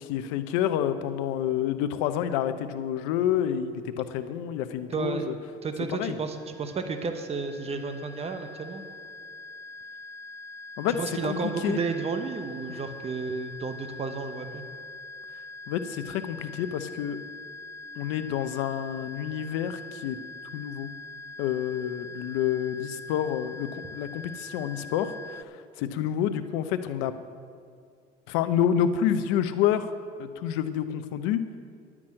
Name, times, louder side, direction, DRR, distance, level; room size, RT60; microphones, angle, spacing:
voice 1, 0.0-5.3 5.9-6.2 10.8-10.9 11.2-11.8 15.7-17.2 18.0-20.2 20.5-20.9 21.4-27.1 28.3-29.9 30.2-31.4, left 10 dB, 75° left, 11 dB, 0.7 m, -28 dB
voice 2, 4.9-5.3 5.6-8.8 10.9-14.6, right 4 dB, 30° right, 7 dB, 1.0 m, -32 dB
sound 1, 6.4-25.4, left 2 dB, 15° left, 0.3 m, -43 dB
10.0 x 6.1 x 8.7 m, 2.2 s
supercardioid pair, 80°, 20 cm